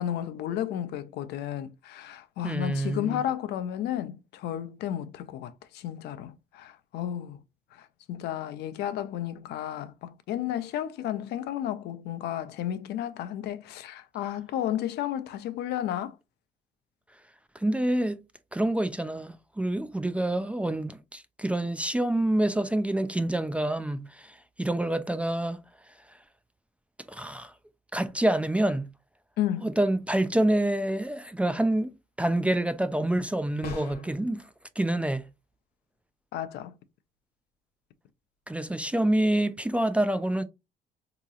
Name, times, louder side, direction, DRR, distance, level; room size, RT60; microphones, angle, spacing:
voice 1, 0.0-7.4 7.7-16.2 29.4-29.7 36.3-36.7, left 11 dB, 75° left, 0.5 m, -33 dB
voice 2, 2.4-3.2 17.6-18.2 18.5-25.6 27.1-27.5 27.9-28.8 29.6-31.9 32.2-34.5 34.8-35.3 38.5-40.4, right 1 dB, 5° right, 0.3 m, -27 dB
sound 1, 33.6-34.2, left 3 dB, 60° left, 1.1 m, -37 dB
3.8 x 2.9 x 2.3 m
cardioid pair, 110°, 17 cm